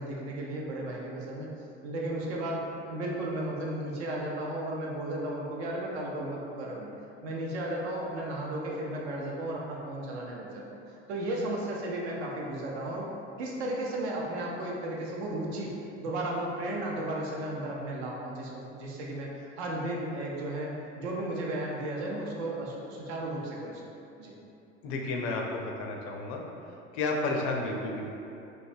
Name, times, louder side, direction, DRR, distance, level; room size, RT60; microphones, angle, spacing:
voice 1, 0.0-1.5 1.8-6.9 7.2-13.1 13.4-15.7 16.0-23.8 24.2-24.3, right 1 dB, 65° right, -2 dB, 0.6 m, -34 dB
voice 2, 24.8-26.4 26.9-28.1, left 3 dB, 50° left, 0 dB, 0.5 m, -31 dB
3.1 x 2.2 x 2.5 m, 2.7 s
figure-of-eight pair, 65°, 34 cm